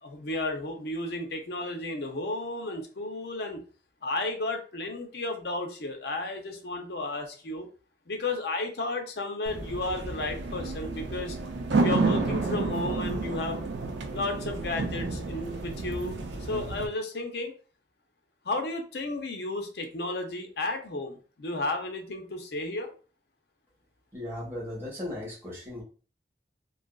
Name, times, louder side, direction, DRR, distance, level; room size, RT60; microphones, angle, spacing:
voice 1, 0.0-3.6 4.0-7.7 8.1-11.4 11.8-13.6 14.1-16.2 16.5-17.5 18.4-22.9, left 2 dB, 65° left, 4 dB, 0.6 m, -33 dB
sound 1, 9.5-16.9, right 3 dB, 90° right, 0.5 m, -30 dB
voice 2, 24.1-25.8, left 1 dB, 15° right, -6 dB, 1.3 m, -37 dB
2.6 x 2.4 x 2.3 m, 0.38 s
head